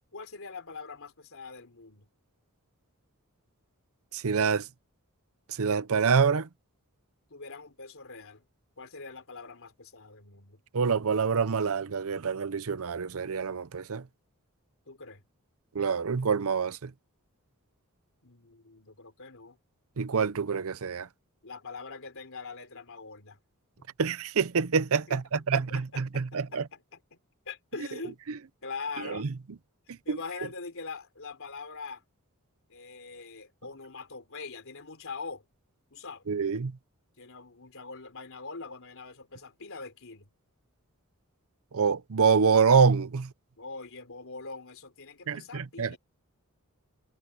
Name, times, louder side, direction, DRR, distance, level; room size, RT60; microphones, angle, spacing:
voice 1, 0.1-2.1 7.3-8.4 8.8-10.6 14.9-15.2 18.2-19.6 21.4-23.4 23.8-23.9 25.1-25.2 25.5-27.2 27.5-28.2 28.6-29.3 29.9-32.0 32.7-35.4 35.9-36.3 37.2-40.3 43.6-46.0, left 4 dB, 65° left, 4.1 m, -43 dB
voice 2, 4.1-4.7 5.6-6.5 10.7-14.0 15.7-16.9 20.0-21.1 24.0-26.6 29.0-29.3 30.1-30.2 36.3-36.8 41.7-43.3 45.3-46.0, right 5 dB, 70° right, 0.7 m, -26 dB
head